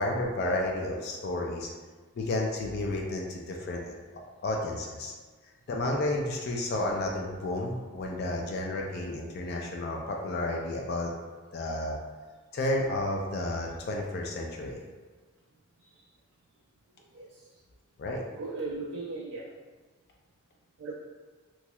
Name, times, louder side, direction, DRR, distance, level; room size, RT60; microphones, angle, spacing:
voice 1, 0.0-1.7 2.2-3.9 4.4-5.1 5.7-11.1 11.5-12.0 12.5-14.8 18.0-18.2, left 1 dB, 50° left, 0 dB, 0.3 m, -31 dB
voice 2, 18.4-19.5 20.8-20.9, right 3 dB, 85° right, -3 dB, 0.4 m, -37 dB
3.0 x 2.8 x 2.2 m, 1.4 s
head